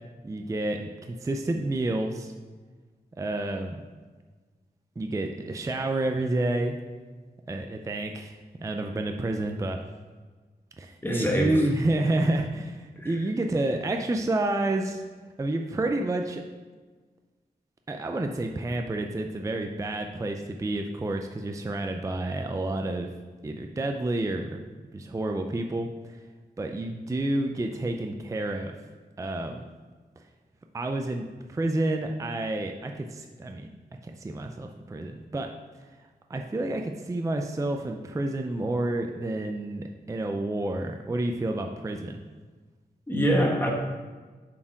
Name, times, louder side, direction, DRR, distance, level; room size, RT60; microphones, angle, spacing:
voice 1, 0.2-2.3 3.2-3.8 5.0-6.8 7.5-8.3 8.6-9.8 10.8-15.0 15.4-16.4 17.9-23.1 23.4-24.6 24.9-26.2 26.6-28.7 29.2-29.6 30.7-35.5 36.3-42.2, right 2 dB, 20° right, 4 dB, 0.4 m, -29 dB
voice 2, 11.0-11.5 13.0-13.2 43.1-43.7, equal, 10° left, -1 dB, 1.2 m, -24 dB
7.2 x 4.4 x 4.5 m, 1.4 s
wide cardioid pair, 140°, 17 cm